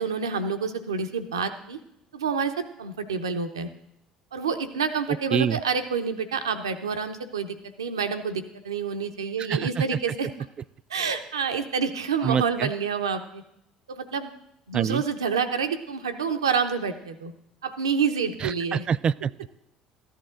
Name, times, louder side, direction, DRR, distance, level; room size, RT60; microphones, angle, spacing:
voice 1, 0.0-1.8 2.1-3.7 4.3-10.3 10.9-13.4 13.9-14.3 14.7-17.3 17.6-18.9, right 5 dB, 85° right, 8 dB, 0.8 m, -28 dB
voice 2, 9.5-9.8 12.2-12.7 14.7-15.0 18.4-19.5, right 7 dB, 40° right, 18 dB, 0.3 m, -25 dB
14.0 x 11.0 x 3.8 m, 0.79 s
hypercardioid pair, 60°, 2 cm